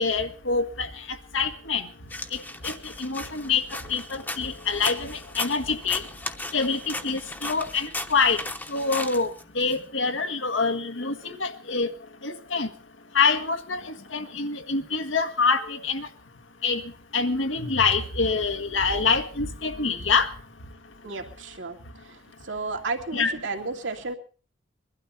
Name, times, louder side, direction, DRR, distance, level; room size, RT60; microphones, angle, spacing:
voice 1, 0.0-1.9 2.3-6.0 6.5-8.4 8.7-11.9 12.2-12.7 13.1-16.1 16.6-16.8 17.1-20.3 23.1-23.4, left 4 dB, 85° left, 7 dB, 1.6 m, -26 dB
sound 1, 2.1-9.8, left 2 dB, 10° left, 1.0 m, -36 dB
voice 2, 21.0-21.8 22.0-24.1, right 3 dB, 80° right, 3 dB, 2.5 m, -33 dB
22.0 x 12.5 x 4.3 m, 0.40 s
head